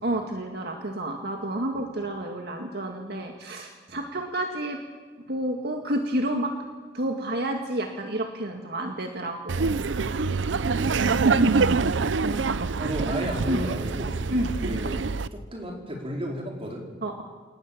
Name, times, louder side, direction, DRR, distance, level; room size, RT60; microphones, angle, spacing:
voice 1, 0.0-4.8 5.3-6.5 6.9-9.8 11.3-11.7 12.2-12.6 13.5-13.7 14.3-14.5 17.0-17.2, right 1 dB, 60° right, 3 dB, 2.0 m, -30 dB
Laughter, 9.5-15.3, right 4 dB, 80° right, 0.6 m, -25 dB
voice 2, 10.6-11.2 12.8-14.2 14.6-15.0 15.3-16.9, equal, 30° right, 0 dB, 4.7 m, -33 dB
27.5 x 19.0 x 7.5 m, 1.5 s
head